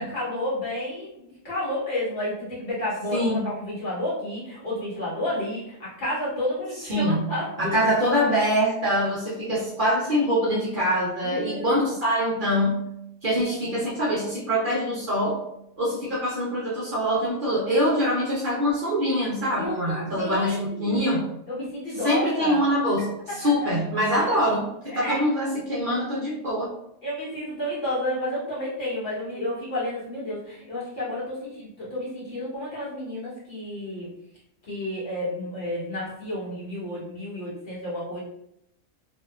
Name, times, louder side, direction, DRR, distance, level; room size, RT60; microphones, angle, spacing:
voice 1, 0.0-7.9 11.2-11.9 13.5-13.6 19.6-21.2 21.5-22.7 23.3-23.7 24.1-24.3 24.9-25.2 27.0-34.1 34.7-38.2, left 1 dB, 50° left, -8 dB, 1.2 m, -31 dB
voice 2, 3.1-3.5 6.9-7.3 7.6-12.8 13.2-15.4 15.8-21.3 22.0-26.7, equal, 50° right, -6 dB, 0.7 m, -24 dB
2.7 x 2.3 x 2.3 m, 0.78 s
omnidirectional pair, 1.3 m